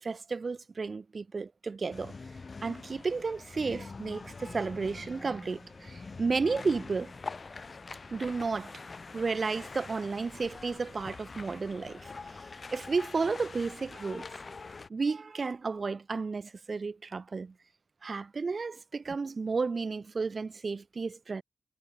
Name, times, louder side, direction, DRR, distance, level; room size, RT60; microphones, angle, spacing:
voice 1, 0.0-2.1 2.6-7.1 8.1-8.8 9.1-12.1 12.7-14.3 14.9-17.5 18.0-21.4, right 4 dB, 45° right, 0.8 m, -32 dB
sound 1, 1.9-14.9, left 4 dB, 40° left, 0.6 m, -45 dB
sound 2, 4.3-12.1, right 1 dB, 10° right, 1.8 m, -56 dB
wide cardioid pair, 150°, 0 cm